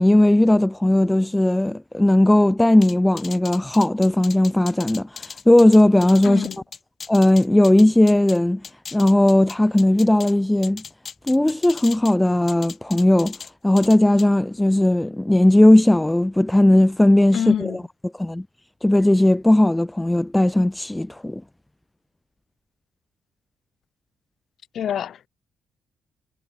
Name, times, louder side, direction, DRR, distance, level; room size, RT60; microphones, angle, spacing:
voice 1, 0.0-6.5 7.1-8.6 8.9-10.8 11.3-13.4 13.6-17.8 18.2-18.4 18.8-21.4, left 1 dB, 10° left, 0.4 m, -17 dB
sound 1, 2.8-8.4 8.6-10.3 10.6-12.1 12.5-13.5 13.8-14.3, left 6 dB, 45° left, 2.2 m, -38 dB
voice 2, 6.2-6.6 17.3-17.8 24.7-25.3, left 9 dB, 65° left, 1.4 m, -26 dB
cardioid pair, 90°, 0 cm